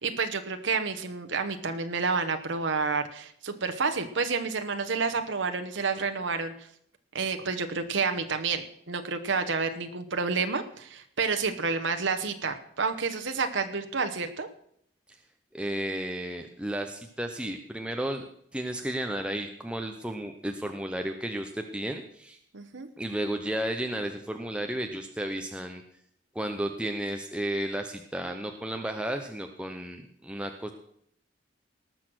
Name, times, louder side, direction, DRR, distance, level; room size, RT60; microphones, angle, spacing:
voice 1, 0.0-6.5 7.1-14.5 22.5-22.9, right 4 dB, 75° right, 6 dB, 1.0 m, -29 dB
voice 2, 15.5-18.2 18.5-22.4 23.0-25.8 26.3-30.7, right 1 dB, 5° right, 4 dB, 0.7 m, -33 dB
19.0 x 6.5 x 6.2 m, 0.68 s
head